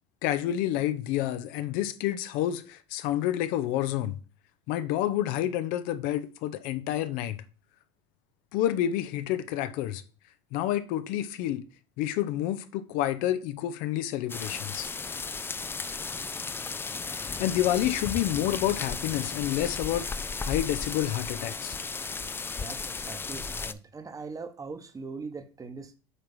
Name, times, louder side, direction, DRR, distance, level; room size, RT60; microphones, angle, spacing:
voice 1, 0.2-4.1 4.7-7.4 8.5-10.0 10.5-11.6 12.0-14.9 17.1-20.1 20.4-21.8, left 12 dB, 65° left, 0.7 m, -29 dB
sound 1, 14.3-23.7, left 4 dB, 15° left, 0.4 m, -35 dB
voice 2, 22.6-25.9, right 4 dB, 20° right, 1.0 m, -41 dB
8.3 x 3.0 x 5.5 m
hypercardioid pair, 90°, 15 cm